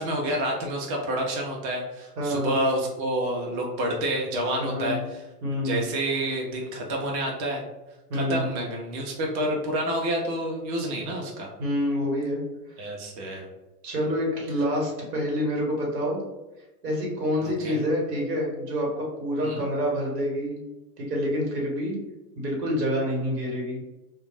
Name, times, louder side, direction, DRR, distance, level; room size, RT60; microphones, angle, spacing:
voice 1, 0.0-5.2 5.6-7.6 8.1-11.5 12.8-13.5 17.4-17.8 19.4-19.6, right 1 dB, 40° right, 0 dB, 0.6 m, -28 dB
voice 2, 2.2-2.6 4.6-5.1 5.4-5.8 8.1-8.5 11.6-12.4 12.8-12.9 13.8-16.2 16.8-20.6 21.0-22.0 22.4-23.8, equal, 80° right, -2 dB, 1.3 m, -27 dB
2.3 x 2.1 x 3.3 m, 1.0 s
hypercardioid pair, 105°, 48 cm